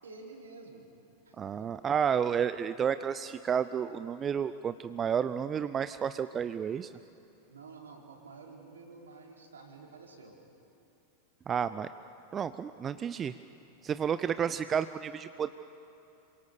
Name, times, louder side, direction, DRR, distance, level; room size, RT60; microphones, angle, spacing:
voice 1, 0.0-0.9 1.2-1.7 7.5-10.4 14.2-14.5, right 4 dB, 70° right, 0 dB, 4.2 m, -50 dB
voice 2, 1.4-6.9 11.5-11.9 12.3-13.3 13.8-15.5, right 7 dB, 25° right, 13 dB, 0.6 m, -31 dB
27.5 x 24.5 x 7.0 m, 2.8 s
figure-of-eight pair, 90°, 0 cm